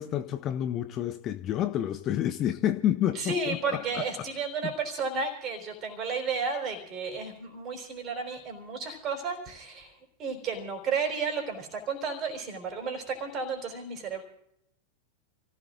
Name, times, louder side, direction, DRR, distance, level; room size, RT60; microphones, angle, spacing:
voice 1, 0.0-4.0 4.6-4.7, left 11 dB, 35° left, 11 dB, 0.7 m, -29 dB
voice 2, 3.1-14.2, right 4 dB, 30° right, 4 dB, 4.2 m, -33 dB
29.0 x 16.5 x 2.6 m, 0.77 s
figure-of-eight pair, 90°, 0 cm